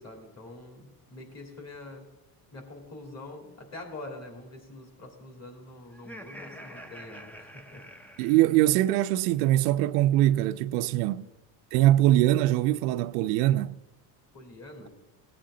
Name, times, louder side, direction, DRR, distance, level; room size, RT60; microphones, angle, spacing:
voice 1, 0.0-2.1 2.5-7.8 11.0-11.3 14.3-14.9, left 2 dB, 35° left, 3.1 m, -45 dB
Laughter, 5.9-9.1, equal, 5° left, 0.5 m, -47 dB
voice 2, 8.2-11.3 11.7-13.7, right 14 dB, 90° right, 0.6 m, -22 dB
17.5 x 8.7 x 3.8 m
cardioid pair, 125°, 47 cm